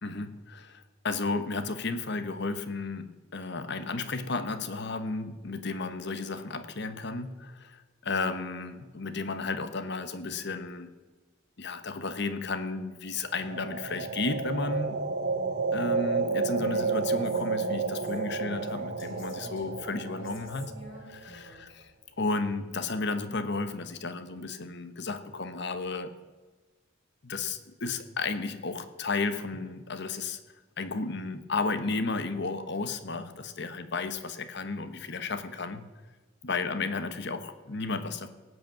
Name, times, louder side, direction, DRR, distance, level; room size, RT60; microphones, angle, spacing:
voice 1, 0.0-10.9 11.6-15.0 15.7-20.7 21.0-21.7 22.2-26.1 27.2-30.4 30.8-35.8 36.4-38.3, left 3 dB, 60° left, 11 dB, 1.1 m, -33 dB
sound 1, 13.3-21.4, right 4 dB, 50° right, 1.0 m, -31 dB
Female speech woman speaking, 16.6-21.7, left 1 dB, 75° left, 3.6 m, -49 dB
17.5 x 8.1 x 7.5 m, 1.3 s
head